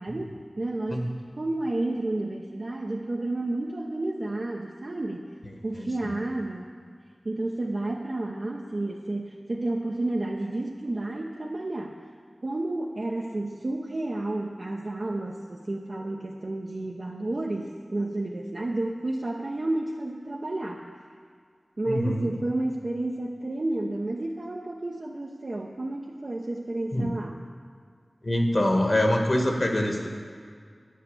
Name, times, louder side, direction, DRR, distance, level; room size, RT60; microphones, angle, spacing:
voice 1, 0.0-5.3 5.6-7.0 7.2-12.0 12.4-20.9 21.8-27.4, right 2 dB, 60° right, -2 dB, 0.8 m, -31 dB
voice 2, 5.8-6.1 21.9-22.3 26.9-27.1 28.2-30.1, left 1 dB, 50° left, 2 dB, 1.6 m, -25 dB
9.4 x 8.5 x 7.2 m, 2.1 s
wide cardioid pair, 55°, 0 cm